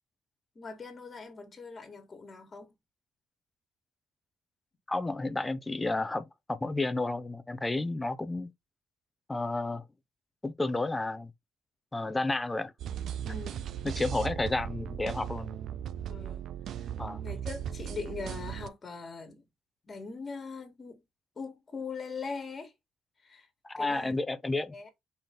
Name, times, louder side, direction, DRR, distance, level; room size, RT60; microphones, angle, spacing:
voice 1, 0.6-2.7 13.2-13.7 14.2-14.3 16.1-16.4 16.8-16.9 17.2-19.4 19.9-21.0 21.4-22.7 23.2-23.5 23.8-24.2 24.7-24.9, left 4 dB, 35° left, 1.8 m, -41 dB
voice 2, 4.9-8.5 9.3-9.8 10.4-11.3 11.9-12.7 13.8-15.6 17.0-17.2 23.6-24.7, left 2 dB, 15° left, 0.7 m, -31 dB
sound 1, 12.8-18.7, right 9 dB, 70° right, 0.4 m, -37 dB
4.2 x 3.2 x 3.8 m
cardioid pair, 80°, 0 cm